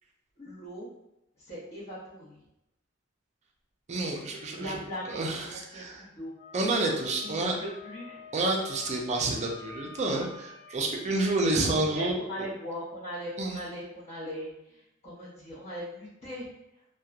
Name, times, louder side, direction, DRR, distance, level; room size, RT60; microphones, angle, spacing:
voice 1, 0.4-0.9 1.4-2.4 4.5-6.3 7.2-8.3 11.9-16.5, equal, 35° left, -10 dB, 0.7 m, -39 dB
voice 2, 3.9-4.8 5.1-6.1 6.5-7.5 8.3-12.2 13.4-13.6, right 2 dB, 35° right, 1 dB, 0.4 m, -29 dB
Wind instrument woodwind instrument, 6.4-11.1, left 5 dB, 55° left, 0.3 m, -48 dB
2.8 x 2.1 x 2.3 m, 0.86 s
head